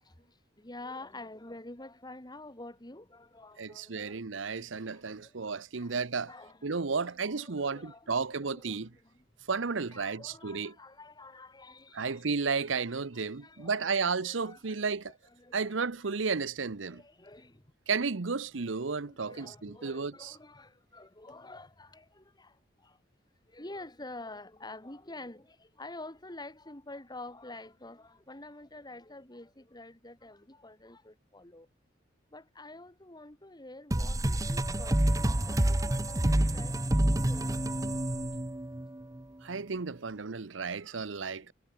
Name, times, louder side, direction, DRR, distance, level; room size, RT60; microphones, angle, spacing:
voice 1, 0.1-4.3 4.9-9.3 9.7-12.3 12.6-12.7 13.1-16.3 16.8-17.7 18.6-18.7 19.0-23.0 23.4-31.7 32.3-35.0 35.4-37.6 40.9-41.5, left 2 dB, 20° left, 2.6 m, -49 dB
voice 2, 3.6-6.3 6.6-8.9 9.5-10.7 11.9-15.1 15.5-17.0 17.9-20.3 39.4-41.5, right 5 dB, 80° right, 0.9 m, -33 dB
sound 1, 33.9-39.2, right 1 dB, 20° right, 0.8 m, -28 dB
head